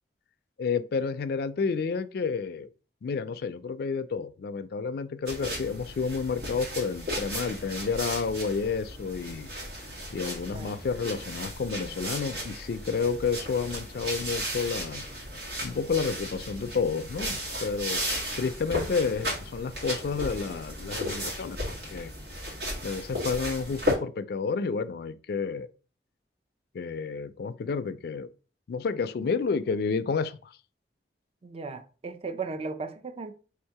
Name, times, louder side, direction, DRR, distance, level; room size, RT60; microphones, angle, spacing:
voice 1, 0.6-2.7 3.0-9.5 10.1-15.0 15.6-18.0 18.4-22.1 22.8-25.7 26.7-28.3 28.7-30.5, left 5 dB, 60° left, 0.3 m, -30 dB
sound 1, 5.2-23.9, equal, 80° right, 1.7 m, -35 dB
voice 2, 10.5-10.8 31.4-33.3, right 4 dB, 35° right, 0.4 m, -36 dB
3.4 x 2.7 x 4.5 m
head